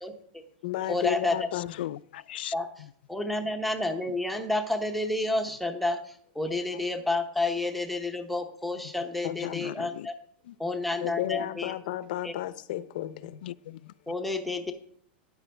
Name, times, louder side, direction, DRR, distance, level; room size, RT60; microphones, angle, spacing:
voice 1, 0.0-0.4 0.9-1.4 2.5-2.7 3.1-10.1 10.6-11.7 12.2-12.3 14.1-14.7, left 2 dB, ahead, 0.8 m, -30 dB
voice 2, 0.6-1.8 9.2-9.6 11.0-13.4, left 14 dB, 50° left, 0.7 m, -33 dB
voice 3, 1.8-2.5 9.4-10.1 10.5-10.6 13.4-13.9, left 13 dB, 70° left, 0.3 m, -38 dB
13.0 x 10.0 x 3.4 m
supercardioid pair, 175°, 6 cm